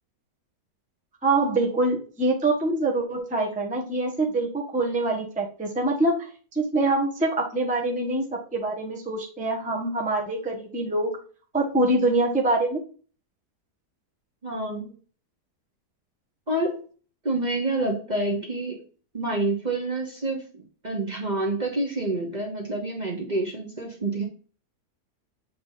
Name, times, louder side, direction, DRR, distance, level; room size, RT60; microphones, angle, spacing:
voice 1, 1.2-6.3 6.5-11.2 11.5-12.8, right 2 dB, 5° right, -1 dB, 0.9 m, -25 dB
voice 2, 14.4-14.9 16.5-16.8 17.2-18.8 19.1-24.2, right 2 dB, 30° right, -1 dB, 1.1 m, -28 dB
7.5 x 3.6 x 3.9 m, 0.40 s
omnidirectional pair, 1.7 m